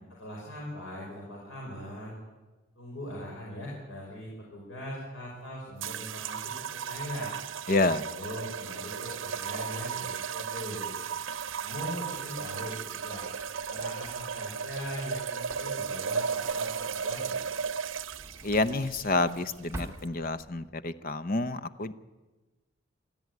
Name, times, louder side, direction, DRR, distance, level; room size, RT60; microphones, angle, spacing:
voice 1, 0.2-2.2 2.8-7.3 8.0-10.9 11.6-13.2 13.7-17.4, left 1 dB, 85° left, -3 dB, 5.4 m, -40 dB
sound 1, 5.8-20.1, right 6 dB, 75° right, 0.7 m, -35 dB
voice 2, 7.7-8.0 18.4-21.9, left 2 dB, 45° left, 13 dB, 0.8 m, -28 dB
Drawer open or close, 11.4-20.7, right 1 dB, 15° right, 2.5 m, -49 dB
23.5 x 14.5 x 9.5 m, 1.2 s
head